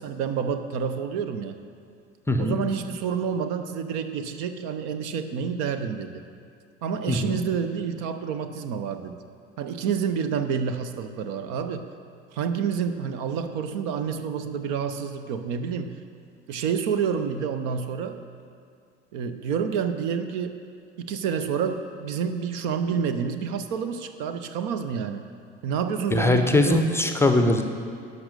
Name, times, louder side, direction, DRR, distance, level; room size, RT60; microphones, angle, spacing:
voice 1, 0.0-1.6 2.4-6.2 6.8-9.2 9.6-11.9 12.3-16.0 16.5-18.2 19.1-20.6 21.0-25.2 25.6-26.9 27.4-27.6, right 7 dB, 50° right, 9 dB, 0.6 m, -28 dB
voice 2, 26.1-27.6, left 2 dB, 5° left, 6 dB, 0.6 m, -21 dB
11.5 x 5.3 x 6.6 m, 2.4 s
figure-of-eight pair, 65°, 34 cm